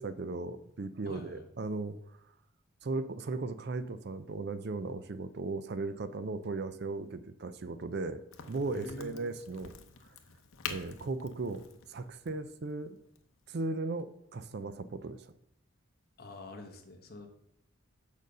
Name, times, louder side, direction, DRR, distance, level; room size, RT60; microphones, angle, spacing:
voice 1, 0.0-2.2 2.8-8.2 8.5-9.7 10.7-13.0 13.5-15.3, right 3 dB, 50° right, 12 dB, 0.4 m, -37 dB
voice 2, 1.0-1.4 8.7-9.1 16.2-17.3, left 1 dB, 45° left, 4 dB, 1.1 m, -45 dB
Crack, 8.3-13.8, left 7 dB, 75° left, 0.8 m, -47 dB
6.6 x 5.1 x 6.6 m, 0.76 s
head